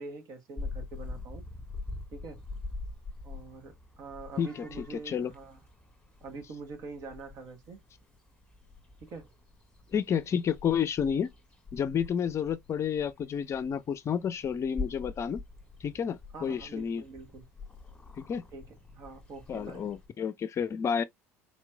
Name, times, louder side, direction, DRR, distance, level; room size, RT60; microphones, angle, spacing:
voice 1, 0.0-1.5 2.1-2.4 3.2-5.6 6.2-7.8 9.0-9.3 16.3-17.4 18.5-19.9, right 4 dB, 50° right, 1.4 m, -45 dB
Purr / Meow, 0.6-20.1, left 3 dB, 10° left, 1.6 m, -45 dB
voice 2, 9.9-11.3 11.7-15.4 15.8-17.0 18.2-18.4 19.5-21.0, left 7 dB, 40° left, 0.5 m, -30 dB
4.2 x 3.0 x 2.2 m
hypercardioid pair, 70°, 8 cm